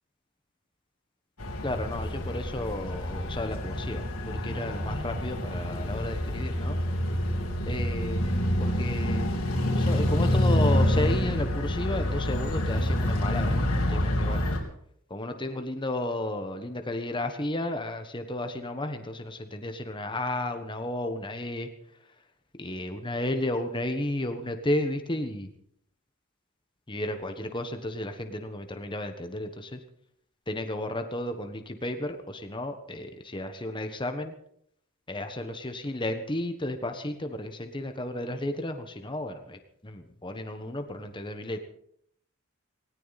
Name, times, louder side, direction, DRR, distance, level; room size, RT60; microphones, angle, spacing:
sound 1, 1.4-14.6, left 1 dB, 85° left, 3.6 m, -27 dB
voice 1, 1.6-6.8 7.6-8.3 8.6-9.3 9.8-13.6 13.9-14.5 15.1-21.7 22.6-25.5 26.9-29.8 30.5-34.3 35.1-41.6, left 1 dB, 20° left, 6 dB, 1.3 m, -33 dB
19.0 x 18.0 x 4.2 m, 0.69 s
head